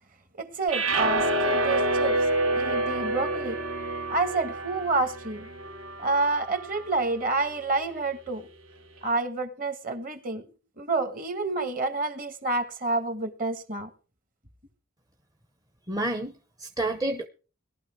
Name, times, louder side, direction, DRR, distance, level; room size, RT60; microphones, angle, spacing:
voice 1, 0.4-2.3 2.5-3.6 4.1-5.5 6.0-8.5 9.0-10.4 10.8-13.9, right 3 dB, 40° right, 1.6 m, -28 dB
sound 1, 0.7-6.9, right 1 dB, 80° right, 2.7 m, -28 dB
voice 2, 15.9-17.3, right 2 dB, 15° right, 0.7 m, -30 dB
18.5 x 12.0 x 4.7 m
head